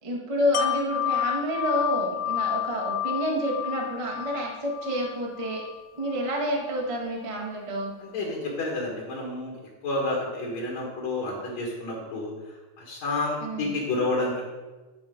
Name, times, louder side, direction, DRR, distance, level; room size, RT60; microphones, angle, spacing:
voice 1, 0.0-5.6 6.0-7.9 13.4-13.8, equal, 35° right, -1 dB, 0.5 m, -29 dB
Wind chime, 0.5-6.3 6.7-6.9, left 11 dB, 90° left, 2.3 m, -30 dB
voice 2, 8.0-9.6 9.8-12.3 12.8-14.4, left 2 dB, 65° left, -3 dB, 2.8 m, -29 dB
11.0 x 5.2 x 5.1 m, 1.3 s
omnidirectional pair, 3.5 m